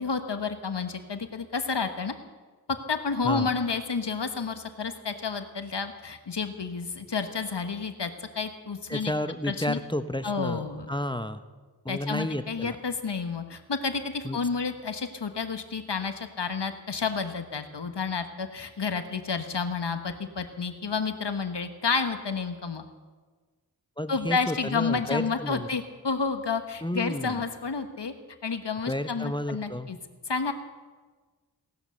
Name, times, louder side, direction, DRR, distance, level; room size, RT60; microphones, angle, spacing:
voice 1, 0.0-2.1 2.7-9.1 9.5-9.8 10.2-10.9 11.9-22.8 24.1-28.1 28.4-30.0 30.3-30.5, left 5 dB, 90° left, 8 dB, 1.3 m, -30 dB
voice 2, 8.9-10.6 10.9-11.4 11.8-12.8 14.2-14.4 24.0-25.7 26.8-27.4 28.8-29.9, left 1 dB, 10° left, 10 dB, 0.8 m, -31 dB
18.0 x 11.5 x 6.7 m, 1.4 s
wide cardioid pair, 45°, 40 cm